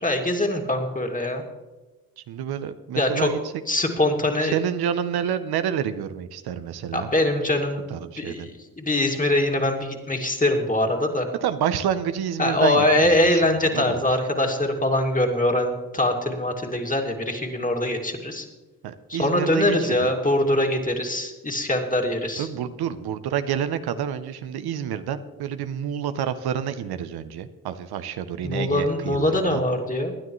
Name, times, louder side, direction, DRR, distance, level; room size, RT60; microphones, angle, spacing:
voice 1, 0.0-1.4 3.0-3.3 3.7-4.6 6.9-7.9 8.2-11.3 12.4-18.5 19.1-22.5 28.4-30.1, left 1 dB, 20° left, 2 dB, 2.3 m, -23 dB
voice 2, 2.3-3.4 4.4-7.1 7.9-8.5 11.4-14.0 18.8-20.1 22.4-29.6, right 9 dB, 85° right, 11 dB, 0.7 m, -28 dB
21.0 x 9.8 x 3.1 m, 1.2 s
supercardioid pair, 50°, 37 cm